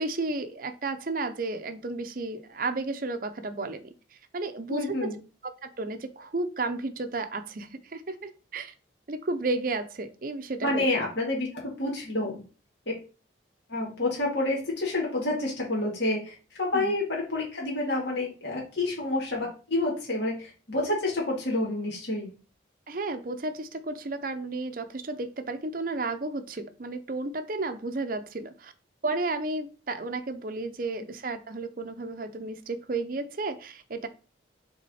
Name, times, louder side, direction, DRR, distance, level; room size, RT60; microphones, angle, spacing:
voice 1, 0.0-3.9 4.3-5.1 5.4-8.7 9.1-10.9 16.7-16.9 22.9-28.7 29.0-34.1, right 3 dB, 45° right, 8 dB, 0.6 m, -33 dB
voice 2, 4.7-5.2 10.6-12.4 13.7-22.3 31.0-31.1, left 2 dB, 65° left, -3 dB, 2.0 m, -29 dB
6.1 x 3.6 x 4.2 m, 0.36 s
head